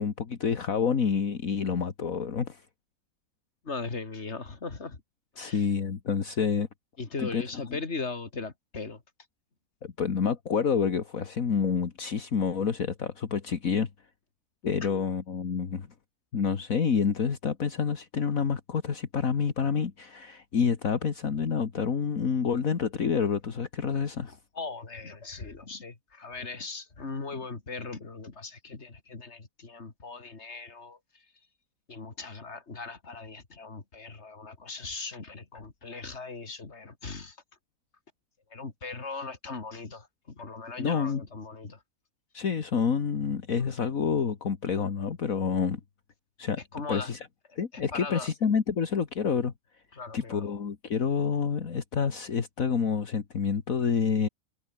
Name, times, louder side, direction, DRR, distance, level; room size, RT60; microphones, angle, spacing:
voice 1, 0.0-2.6 5.4-6.7 7.2-7.4 9.8-13.9 14.6-15.9 16.3-24.3 40.8-41.2 42.3-45.8 46.4-46.6 46.9-47.3 47.6-49.5 50.1-54.3, left 6 dB, 65° left, 2.1 m, -28 dB
voice 2, 3.6-5.0 5.3-5.7 7.0-9.0 14.8-14.9 24.3-31.2 31.9-37.4 38.5-41.8 46.7-47.2 47.7-48.3 49.9-50.4, left 4 dB, 45° left, 2.9 m, -39 dB
omnidirectional pair, 1.6 m